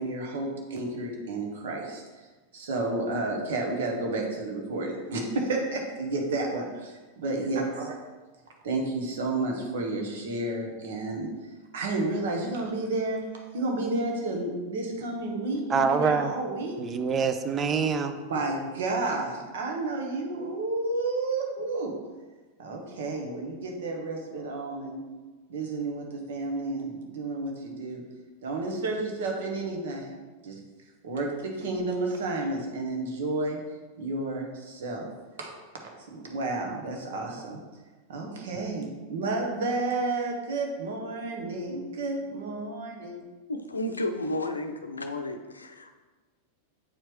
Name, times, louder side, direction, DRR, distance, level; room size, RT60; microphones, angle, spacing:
voice 1, 0.0-2.0 2.5-8.0 8.6-11.3 11.7-13.2 13.5-16.8 18.3-22.0 22.6-25.0 25.5-28.0 28.4-30.2 30.4-30.6 31.0-33.6 34.0-35.1 35.4-35.5 36.1-37.6 38.1-43.3, right 2 dB, 60° right, 1 dB, 1.3 m, -31 dB
voice 2, 15.7-16.3 16.8-18.2, right 5 dB, 25° right, 9 dB, 0.5 m, -25 dB
voice 3, 43.5-45.9, left 1 dB, 80° left, 7 dB, 0.6 m, -32 dB
8.6 x 4.5 x 3.1 m, 1.3 s
figure-of-eight pair, 90°, 0 cm